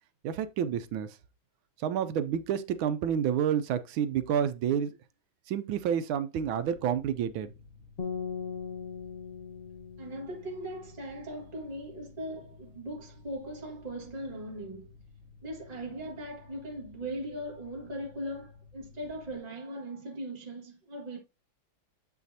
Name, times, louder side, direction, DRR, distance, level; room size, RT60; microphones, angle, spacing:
voice 1, 0.2-1.2 1.8-5.0 5.5-7.5, right 8 dB, 80° right, 1.4 m, -29 dB
Mechanical fan, 6.6-19.4, left 4 dB, 35° right, 1.9 m, -55 dB
sound 1, 8.0-11.2, left 6 dB, 40° left, 1.0 m, -39 dB
voice 2, 10.0-14.9 15.4-21.2, right 1 dB, 20° right, 1.7 m, -39 dB
7.5 x 6.1 x 2.8 m
omnidirectional pair, 2.2 m